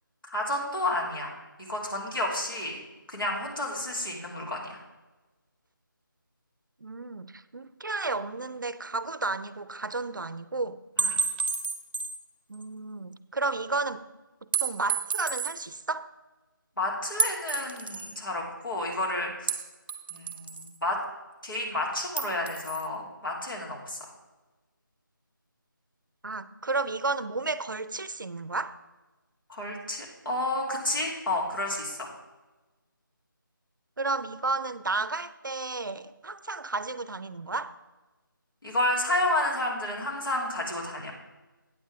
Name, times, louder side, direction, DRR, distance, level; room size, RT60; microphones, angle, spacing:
voice 1, 0.3-1.4 1.7-2.8 3.1-4.8 11.0-11.2 16.8-19.6 20.1-21.0 21.4-24.0 29.5-32.1 38.6-41.1, left 1 dB, 75° left, -2 dB, 2.8 m, -30 dB
voice 2, 6.8-10.8 12.5-14.1 14.6-16.1 26.2-28.8 34.0-37.8, right 3 dB, 65° right, 15 dB, 0.5 m, -32 dB
sound 1, 11.0-12.2 12.6-12.7 14.5-15.6 17.2-18.1 19.5-20.8 22.2-22.9, right 4 dB, 30° right, 0.7 m, -30 dB
8.8 x 7.3 x 4.7 m, 1.2 s
figure-of-eight pair, 160°, 11 cm